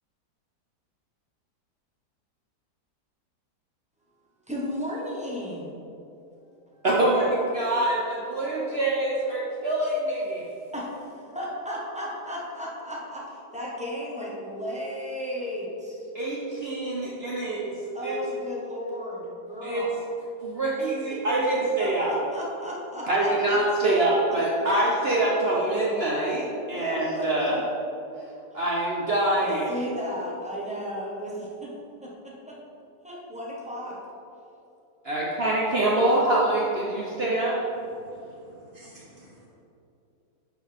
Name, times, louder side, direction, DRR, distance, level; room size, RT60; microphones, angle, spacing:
voice 1, 4.5-5.8 10.7-10.9 11.2-16.1 17.9-20.0 21.8-24.1 26.7-27.6 29.3-31.7 32.0-32.6 33.0-34.0, equal, 5° right, -6 dB, 1.0 m, -34 dB
voice 2, 6.8-10.4 16.1-17.7 18.0-18.1 19.6-19.9 20.4-22.1 23.0-27.6 28.5-29.7 35.0-37.6, right 1 dB, 50° right, -5 dB, 0.8 m, -25 dB
voice 3, 38.0-39.5, equal, 45° left, -5 dB, 0.7 m, -52 dB
10.5 x 4.5 x 3.5 m, 2.8 s
omnidirectional pair, 1.9 m